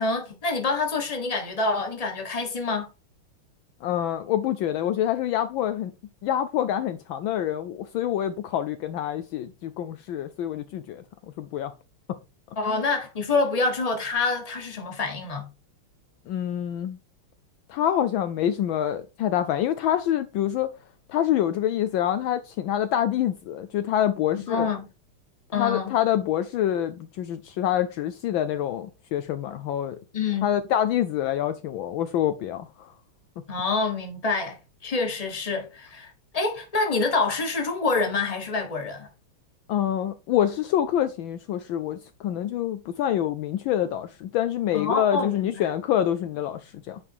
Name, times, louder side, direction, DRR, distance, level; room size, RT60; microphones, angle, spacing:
voice 1, 0.0-2.9 12.6-15.5 24.5-24.9 25.5-25.9 30.1-30.5 33.5-39.1 44.7-45.7, left 3 dB, 20° left, 1.4 m, -27 dB
voice 2, 3.8-5.9 6.2-11.0 11.4-11.7 12.1-12.2 12.7-12.8 16.3-17.0 17.7-20.7 21.1-24.7 25.5-30.0 30.4-32.9 39.7-47.0, left 11 dB, 75° left, 1.3 m, -26 dB
9.7 x 3.6 x 4.6 m
omnidirectional pair, 2.4 m